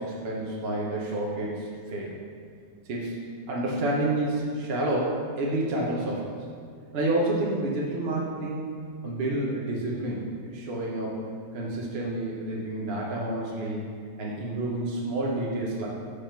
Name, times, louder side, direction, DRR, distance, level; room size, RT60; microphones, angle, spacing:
voice 1, 0.0-2.2 2.8-3.2 3.5-6.4 6.9-8.7 9.0-11.2 11.5-13.9 14.2-15.9, right 1 dB, 45° right, -4 dB, 1.0 m, -29 dB
7.2 x 4.9 x 4.5 m, 2.1 s
omnidirectional pair, 1.8 m